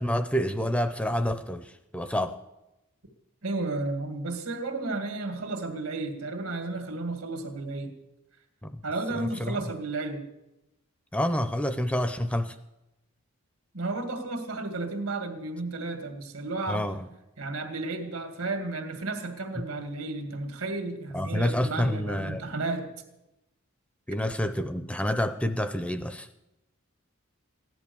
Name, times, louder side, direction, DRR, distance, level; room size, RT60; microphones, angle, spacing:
voice 1, 0.0-2.4 8.6-8.8 9.1-9.6 11.1-12.5 16.7-17.1 21.1-22.4 24.1-26.3, equal, 5° left, 10 dB, 0.5 m, -28 dB
voice 2, 3.4-7.9 8.8-10.3 13.7-16.9 17.4-22.9, right 3 dB, 80° right, 6 dB, 2.2 m, -33 dB
15.5 x 11.0 x 7.0 m, 0.92 s
head